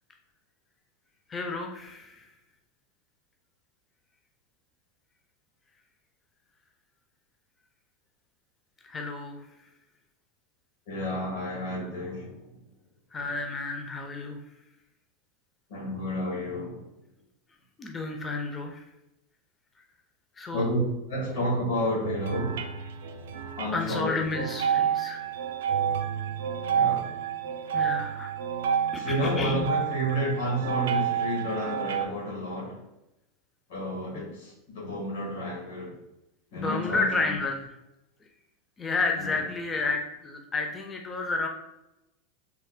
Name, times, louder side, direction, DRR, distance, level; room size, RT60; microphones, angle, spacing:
voice 1, 1.3-2.3 8.8-9.5 13.1-14.4 17.8-18.8 20.4-20.7 23.7-25.2 27.7-28.3 28.9-29.7 34.1-34.2 36.5-37.8 38.8-41.5, left 3 dB, 20° left, 2 dB, 0.4 m, -31 dB
voice 2, 10.9-12.4 15.7-16.8 20.5-20.8 21.1-22.6 23.6-24.1 26.7-27.1 29.0-32.8 33.7-36.0 36.5-37.3, equal, 80° left, -2 dB, 1.5 m, -30 dB
sound 1, 22.0-32.1, right 8 dB, 85° right, 0.4 m, -29 dB
3.2 x 2.1 x 3.5 m, 0.91 s
supercardioid pair, 125°, 0 cm